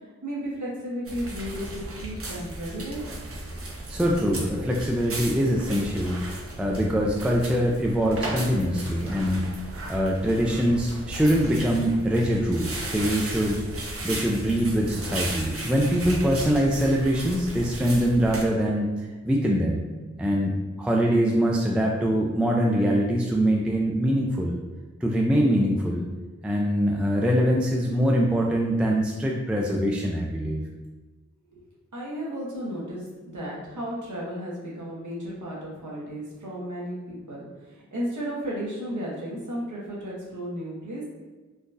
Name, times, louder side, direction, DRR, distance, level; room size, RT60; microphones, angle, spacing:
voice 1, 0.2-3.0 31.5-31.6 31.9-33.1 33.3-41.0, equal, 80° right, -6 dB, 1.1 m, -34 dB
sound 1, 1.1-18.4, right 1 dB, 50° right, 0.6 m, -35 dB
voice 2, 3.9-9.5 9.9-13.6 14.0-19.8 20.2-24.6 25.0-26.1 26.4-30.6, equal, 5° right, -2 dB, 0.3 m, -23 dB
3.7 x 2.3 x 2.6 m, 1.3 s
wide cardioid pair, 65°, 30 cm